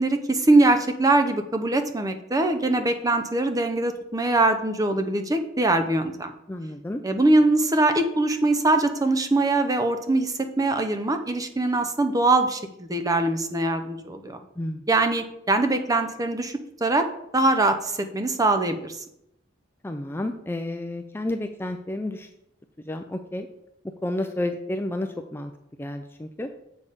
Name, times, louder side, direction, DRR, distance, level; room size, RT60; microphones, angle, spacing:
voice 1, 0.0-6.3 7.0-14.4 14.9-17.1 17.3-19.0, right 2 dB, 20° right, 6 dB, 0.7 m, -22 dB
voice 2, 6.5-7.0 14.6-14.8 19.8-22.3 22.9-23.5 24.0-25.5 25.8-26.5, left 1 dB, 10° left, 6 dB, 0.4 m, -31 dB
7.1 x 6.4 x 5.1 m, 0.80 s
head